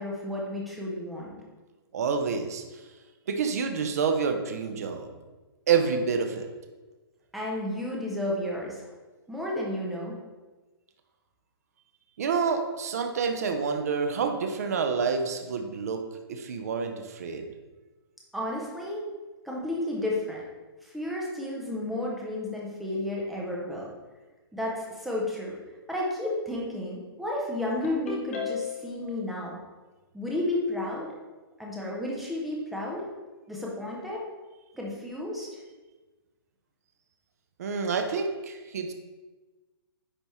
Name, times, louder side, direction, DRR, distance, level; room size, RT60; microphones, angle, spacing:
voice 1, 0.0-1.4 7.3-8.8 9.3-10.2 18.3-19.0 19.4-20.4 20.8-23.9 24.5-25.6 25.9-29.6 30.1-31.1 31.6-33.1 33.5-34.2 34.7-35.6, left 1 dB, ahead, -4 dB, 0.3 m, -32 dB
voice 2, 1.9-2.6 3.3-5.1 5.7-6.5 12.2-16.0 16.3-17.5 37.6-38.9, right 5 dB, 40° right, 5 dB, 0.6 m, -28 dB
Ringtone, 27.8-29.0, left 6 dB, 35° left, 1.1 m, -34 dB
9.8 x 3.4 x 3.0 m, 1.2 s
hypercardioid pair, 175°, 13 cm